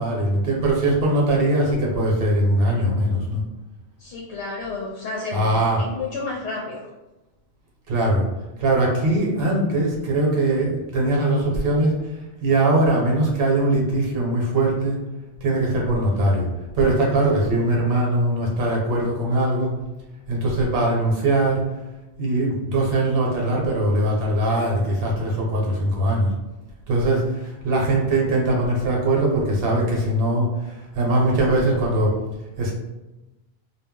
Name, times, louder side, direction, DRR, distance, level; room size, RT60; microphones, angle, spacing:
voice 1, 0.0-3.4 5.3-5.8 7.9-8.3 8.6-11.9 12.4-15.0 15.4-16.5 16.7-19.7 20.3-21.6 22.2-26.3 26.9-32.1 32.6-32.7, right 1 dB, 60° right, -2 dB, 0.9 m, -21 dB
voice 2, 4.0-5.5 5.8-6.8, left 3 dB, 80° left, -3 dB, 0.8 m, -31 dB
2.2 x 2.0 x 3.6 m, 1.0 s
omnidirectional pair, 1.1 m